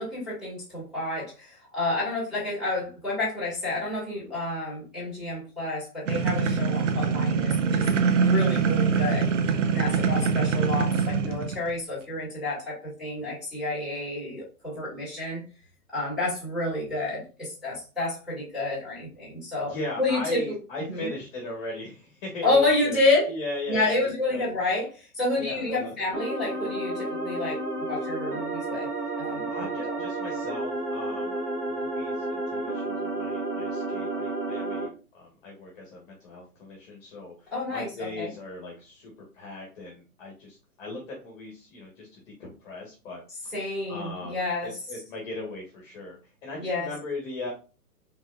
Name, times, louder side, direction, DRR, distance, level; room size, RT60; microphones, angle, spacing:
voice 1, 0.0-9.3 9.7-15.4 15.9-20.4 20.9-21.1 22.4-23.3 23.7-28.9 29.2-30.0 37.5-38.3 43.5-44.7 46.6-46.9, left 2 dB, ahead, -9 dB, 2.3 m, -29 dB
sound 1, 6.1-11.7, right 5 dB, 50° right, 0.7 m, -24 dB
voice 2, 19.7-23.0 23.2-24.4 25.3-26.0 29.5-43.5 43.9-47.5, left 2 dB, 35° left, -1 dB, 1.4 m, -38 dB
sound 2, 26.1-34.9, right 2 dB, 75° right, 1.5 m, -31 dB
4.8 x 3.6 x 2.4 m, 0.34 s
figure-of-eight pair, 125°, 46 cm